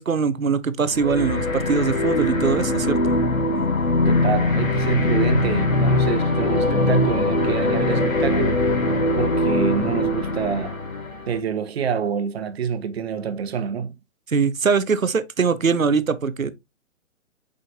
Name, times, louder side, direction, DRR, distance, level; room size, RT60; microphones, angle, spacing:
voice 1, 0.0-3.2 14.3-16.5, right 5 dB, 90° right, 0.9 m, -22 dB
sound 1, 0.9-11.4, left 2 dB, 85° left, 1.5 m, -21 dB
voice 2, 4.0-8.6 9.2-10.8 11.3-13.9, right 7 dB, 50° right, 1.2 m, -26 dB
7.4 x 5.1 x 2.7 m
figure-of-eight pair, 130°, 39 cm